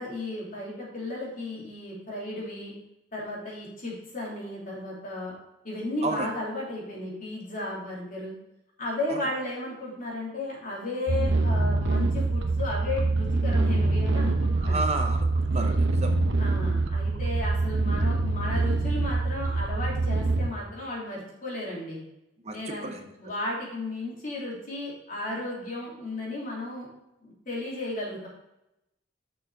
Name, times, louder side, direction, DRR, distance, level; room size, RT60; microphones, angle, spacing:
voice 1, 0.0-2.7 3.1-5.3 5.6-8.3 8.8-14.8 16.4-22.0 22.5-22.9 23.2-26.9 27.2-28.3, left 2 dB, 50° left, -4 dB, 3.1 m, -34 dB
sound 1, 11.1-20.5, right 3 dB, 75° right, 0.8 m, -25 dB
voice 2, 14.6-16.1 22.4-23.0, right 2 dB, 35° right, 5 dB, 0.8 m, -32 dB
6.8 x 6.2 x 4.8 m, 0.89 s
head